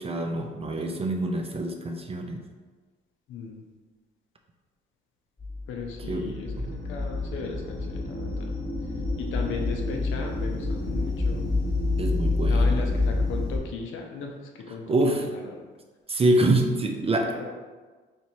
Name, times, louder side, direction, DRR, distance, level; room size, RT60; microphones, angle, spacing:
voice 1, 0.0-2.4 6.1-6.8 12.0-12.8 14.9-15.3 16.1-17.3, right 1 dB, 30° right, 3 dB, 0.4 m, -26 dB
voice 2, 3.3-3.6 5.7-8.6 9.2-11.5 12.5-15.6 17.2-17.5, left 4 dB, 85° left, 2 dB, 0.6 m, -37 dB
sound 1, 5.4-13.6, left 2 dB, 20° left, 1.1 m, -28 dB
2.9 x 2.7 x 4.4 m, 1.4 s
cardioid pair, 90°, 20 cm